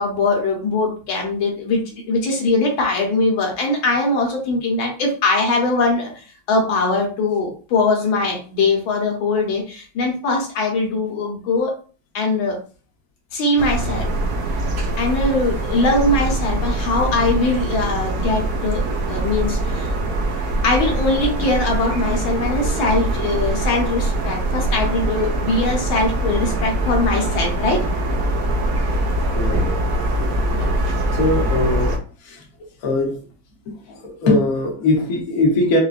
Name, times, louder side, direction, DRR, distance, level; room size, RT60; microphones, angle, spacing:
voice 1, 0.0-1.8 2.1-11.7 12.1-12.6 13.3-14.1 15.0-19.9 20.6-27.8 30.5-30.7, left 3 dB, 70° left, 0 dB, 1.6 m, -21 dB
sound 1, 13.6-32.0, right 1 dB, 80° right, 0.8 m, -22 dB
voice 2, 31.1-32.0 32.2-32.4 32.8-33.2 33.9-35.8, left 2 dB, 55° left, -1 dB, 1.1 m, -20 dB
4.8 x 2.2 x 2.4 m, 0.38 s
omnidirectional pair, 2.3 m